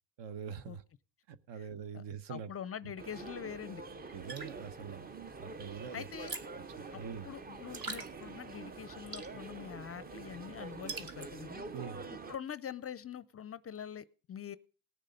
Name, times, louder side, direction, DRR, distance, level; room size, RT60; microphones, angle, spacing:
voice 1, 0.2-0.8 1.3-2.5 2.8-2.9 4.1-5.1 5.4-6.0 6.8-7.3 11.7-12.0, right 7 dB, 65° right, 1.0 m, -44 dB
voice 2, 2.3-3.8 5.9-6.4 6.9-11.7 12.3-14.6, left 8 dB, 30° left, 0.5 m, -44 dB
sound 1, 3.0-12.4, right 4 dB, 20° right, 0.5 m, -46 dB
sound 2, 4.1-11.6, right 4 dB, 50° right, 1.6 m, -48 dB
18.5 x 6.7 x 5.1 m
cardioid pair, 105°, 46 cm